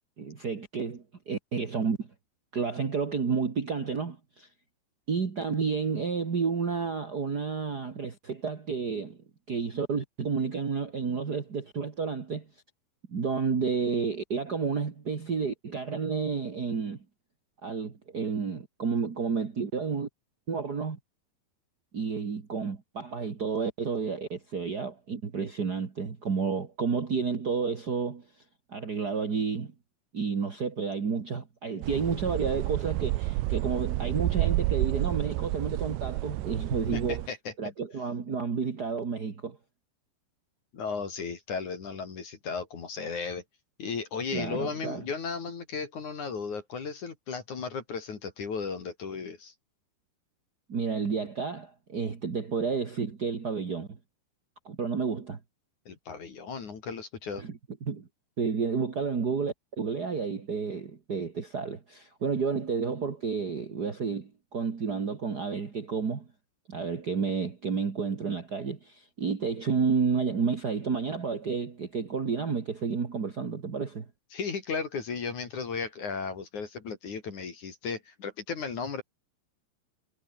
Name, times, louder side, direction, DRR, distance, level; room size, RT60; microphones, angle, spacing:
voice 1, 0.2-2.1 2.5-4.5 5.1-9.2 9.5-12.5 13.1-17.0 17.6-20.1 20.5-21.0 21.9-28.2 28.7-29.7 30.1-37.2 37.6-39.6 44.3-45.0 50.7-54.0 54.6-55.4 57.4-58.1 58.4-66.3 66.7-74.0, right 5 dB, 45° right, 1.2 m, -31 dB
sound 1, 31.8-37.3, right 19 dB, 85° right, 3.1 m, -30 dB
voice 2, 36.9-37.5 40.7-43.4 43.8-49.5 55.9-57.4 74.3-79.0, left 5 dB, 45° left, 4.0 m, -35 dB
omnidirectional pair, 5.3 m